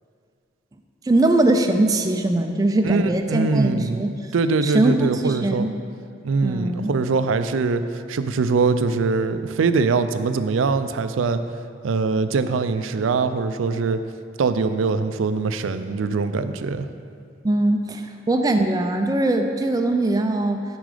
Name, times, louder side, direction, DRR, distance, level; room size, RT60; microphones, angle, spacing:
voice 1, 1.0-4.1 4.6-5.7 6.4-6.9 17.4-20.6, right 2 dB, 20° right, 5 dB, 0.3 m, -21 dB
voice 2, 2.8-4.0 4.3-5.7 6.2-7.8 8.1-11.4 11.8-14.0 14.4-16.9, right 4 dB, 85° right, 11 dB, 0.4 m, -22 dB
7.4 x 6.0 x 4.9 m, 2.3 s
head